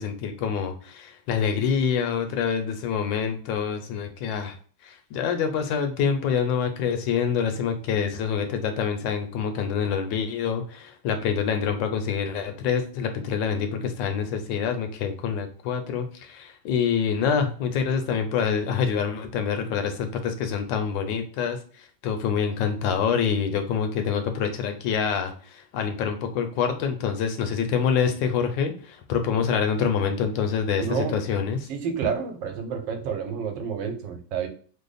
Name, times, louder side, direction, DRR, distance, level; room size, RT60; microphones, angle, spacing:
voice 1, 0.0-4.5 4.8-21.6 22.0-31.7, left 7 dB, 85° left, 6 dB, 1.3 m, -26 dB
voice 2, 30.8-31.2 31.7-34.5, right 6 dB, 90° right, 6 dB, 1.4 m, -29 dB
3.2 x 2.0 x 3.8 m, 0.43 s
omnidirectional pair, 2.0 m